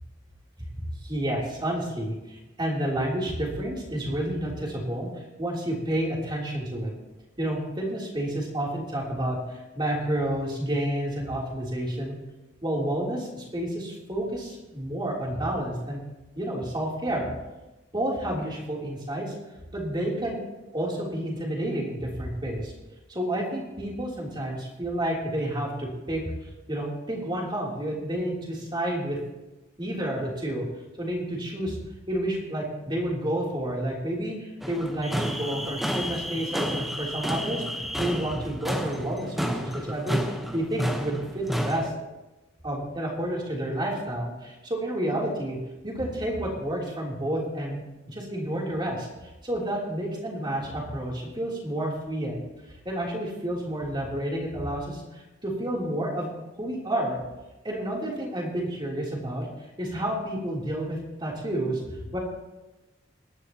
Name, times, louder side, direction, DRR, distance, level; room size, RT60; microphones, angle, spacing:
voice 1, 0.6-5.1 5.4-6.9 7.4-12.1 12.6-16.0 16.3-17.3 17.9-19.3 19.7-20.4 20.7-22.7 23.1-29.2 29.8-30.7 31.0-31.8 32.1-41.9 42.6-45.6 45.8-47.8 48.1-57.2 57.6-59.5 59.8-62.2, right 1 dB, 25° right, -3 dB, 3.2 m, -30 dB
sound 1, 34.6-41.9, equal, ahead, 1.0 m, -31 dB
22.5 x 11.0 x 2.9 m, 1.0 s
head